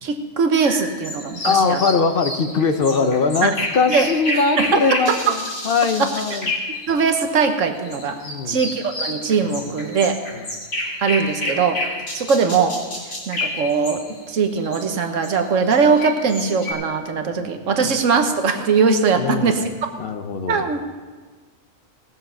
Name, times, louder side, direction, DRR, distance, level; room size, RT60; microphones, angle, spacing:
voice 1, 0.0-1.8 3.4-3.5 3.9-4.1 4.3-4.8 5.1-5.3 6.0-6.1 6.9-10.2 11.0-11.8 12.1-12.8 13.3-14.0 14.3-19.6 20.4-20.8, right 5 dB, 70° right, 6 dB, 1.4 m, -20 dB
sound 1, 0.6-7.2 7.8-14.3 14.6-14.9 15.2-16.7, left 2 dB, 90° left, 3.7 m, -29 dB
voice 2, 1.4-6.5 8.2-8.6 10.3-10.4 17.3-17.5 17.9-18.0 19.2-19.7 20.0-20.6, left 4 dB, 50° left, 9 dB, 0.8 m, -21 dB
18.5 x 7.2 x 5.7 m, 1.4 s
omnidirectional pair, 1.4 m